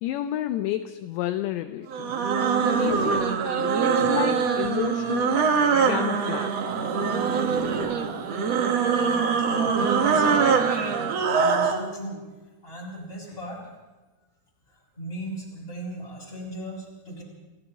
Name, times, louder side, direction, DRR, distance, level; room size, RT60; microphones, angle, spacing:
voice 1, 0.0-2.1 2.8-3.3 3.8-5.6 5.9-6.5, left 12 dB, 80° left, 9 dB, 2.8 m, -30 dB
sound 1, 1.9-11.8, right 6 dB, 80° right, 1.4 m, -23 dB
voice 2, 2.3-2.7 9.4-12.2 12.6-13.6 14.7-17.2, right 1 dB, 10° left, -3 dB, 6.9 m, -37 dB
29.5 x 29.5 x 3.0 m, 1.2 s
omnidirectional pair, 5.4 m